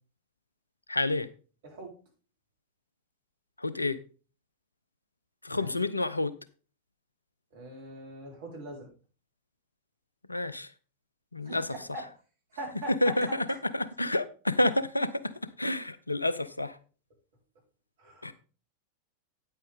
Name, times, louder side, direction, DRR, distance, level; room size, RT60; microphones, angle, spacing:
voice 1, 0.9-1.3 3.6-4.0 5.4-6.3 10.3-10.7 11.3-11.7 13.0-13.3 13.7-15.3 15.6-16.8 18.2-18.3, left 2 dB, 85° left, 0.6 m, -29 dB
voice 2, 7.5-8.9 11.4-12.0 12.6-13.6 18.0-18.3, right 1 dB, 55° right, 4.1 m, -41 dB
9.2 x 8.7 x 3.5 m
figure-of-eight pair, 90°, 0 cm